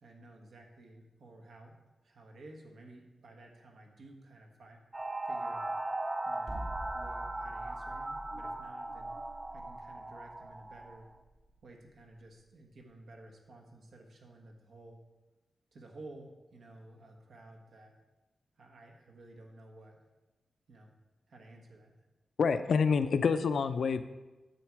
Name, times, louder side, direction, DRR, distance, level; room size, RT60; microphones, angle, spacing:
voice 1, 0.0-4.8 5.3-5.8 6.2-6.6 6.9-9.1 9.5-11.1 11.6-15.0 15.7-17.9 18.6-20.0 20.7-20.9 21.3-21.9, right 2 dB, 75° right, 2 dB, 1.6 m, -53 dB
sound 1, 4.9-11.0, right 2 dB, 15° right, 0.4 m, -38 dB
sound 2, 6.5-12.6, right 1 dB, 50° right, 1.4 m, -47 dB
voice 2, 22.4-24.0, left 5 dB, 70° left, 10 dB, 0.5 m, -27 dB
10.5 x 7.2 x 4.8 m, 1.1 s
wide cardioid pair, 145°, 0 cm